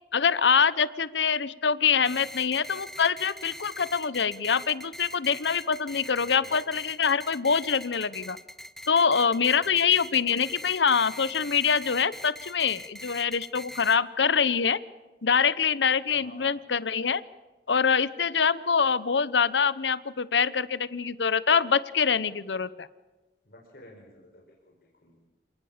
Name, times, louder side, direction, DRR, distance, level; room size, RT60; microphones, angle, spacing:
voice 1, 0.1-8.4 8.9-14.8 15.2-17.2 17.7-22.9, left 6 dB, 90° left, 17 dB, 0.9 m, -25 dB
sound 1, 2.0-14.0, equal, ahead, 0.7 m, -43 dB
voice 2, 6.2-6.7 9.6-9.8 10.1-10.3 16.1-16.5 23.4-25.3, left 1 dB, 55° left, -1 dB, 5.1 m, -53 dB
27.5 x 19.0 x 7.2 m, 1.1 s
head